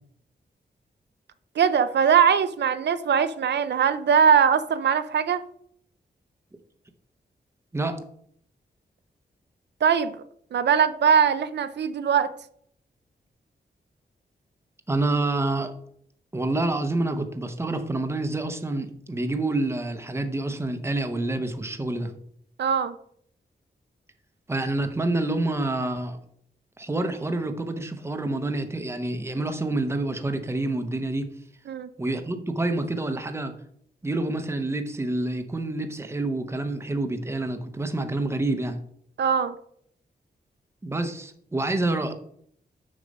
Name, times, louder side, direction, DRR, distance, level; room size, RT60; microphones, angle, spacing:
voice 1, 1.6-5.4 9.8-10.2 10.5-12.3 22.6-23.0 31.7-31.9 39.2-39.6, right 7 dB, 80° right, 12 dB, 0.5 m, -21 dB
voice 2, 14.9-15.7 16.3-22.1 24.5-26.2 26.8-31.3 32.0-33.5 34.0-38.8 40.8-42.1, right 2 dB, 15° right, 7 dB, 0.8 m, -27 dB
6.5 x 6.5 x 5.2 m, 0.67 s
wide cardioid pair, 165°, 17 cm